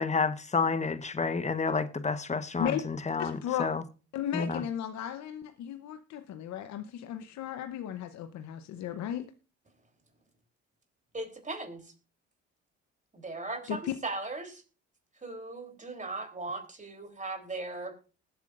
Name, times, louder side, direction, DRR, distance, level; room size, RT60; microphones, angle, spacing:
voice 1, 0.0-3.8 4.3-4.6, left 4 dB, 25° left, 1.1 m, -30 dB
voice 2, 3.2-3.7 4.1-9.3 13.7-13.9, left 10 dB, 65° left, 0.9 m, -35 dB
voice 3, 11.1-11.8 13.1-14.6 15.2-17.9, right 2 dB, 25° right, 3.4 m, -38 dB
20.0 x 8.1 x 2.5 m
supercardioid pair, 60°, 30 cm